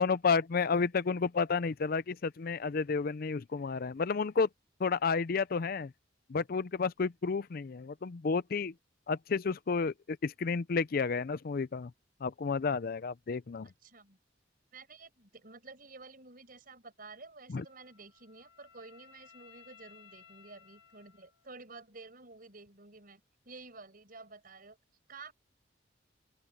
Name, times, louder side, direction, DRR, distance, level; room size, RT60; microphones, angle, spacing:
voice 1, 0.0-4.5 4.8-5.9 6.3-8.7 9.1-11.9 12.2-13.7 17.5-17.6, left 5 dB, 50° left, 0.5 m, -31 dB
voice 2, 13.8-14.2 14.7-23.2 23.5-24.8 25.1-25.3, right 3 dB, 50° right, 5.6 m, -51 dB
Wind instrument woodwind instrument, 17.6-21.8, left 8 dB, 75° left, 6.8 m, -60 dB
open air
head